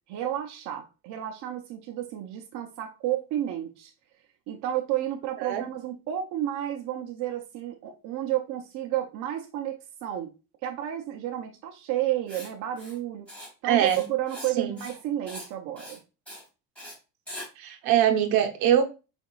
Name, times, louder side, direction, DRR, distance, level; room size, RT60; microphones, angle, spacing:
voice 1, 0.1-3.9 4.5-10.3 10.6-13.3 13.6-16.0, right 12 dB, 45° right, 3 dB, 0.6 m, -31 dB
Writing, 12.3-12.5 12.8-13.0 13.3-13.5 13.8-14.5 14.8-15.0 15.3-15.5 15.8-16.0 16.3-16.4 16.8-16.9 17.3-17.5, equal, 5° left, 2.5 m, -42 dB
voice 2, 13.6-14.0 14.6-14.8 17.6-18.8, right 10 dB, 65° right, 5 dB, 0.9 m, -23 dB
4.6 x 3.5 x 2.3 m, 0.29 s
cardioid pair, 140°, 39 cm